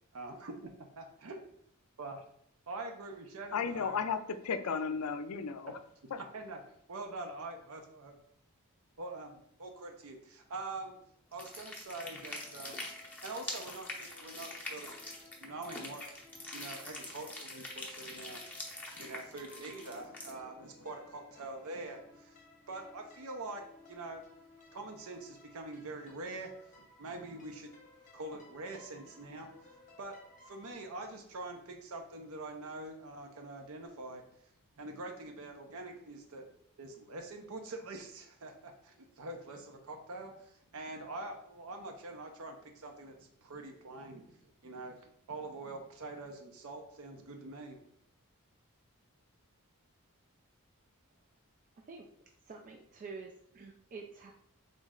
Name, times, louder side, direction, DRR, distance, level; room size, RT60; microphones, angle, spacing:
voice 1, 0.1-0.5 0.9-1.4 2.0-2.2 2.7-4.1 5.7-5.8 6.2-6.6 6.9-8.2 9.0-11.0 11.3-12.9 13.2-15.1 15.4-16.0 16.5-22.4 22.7-24.2 24.7-27.7 28.1-29.7 30.0-30.1 30.4-34.2 34.8-36.5 36.8-47.8, right 2 dB, 70° right, 3 dB, 0.6 m, -45 dB
voice 2, 3.5-5.7, left 6 dB, 75° left, 10 dB, 0.4 m, -34 dB
sound 1, 11.3-20.3, left 1 dB, 5° left, 0.7 m, -44 dB
sound 2, 11.8-30.7, left 2 dB, 35° left, 0.8 m, -59 dB
voice 3, 51.8-52.1 52.4-54.3, right 4 dB, 35° right, 2 dB, 0.3 m, -48 dB
3.8 x 3.1 x 3.7 m, 0.67 s
head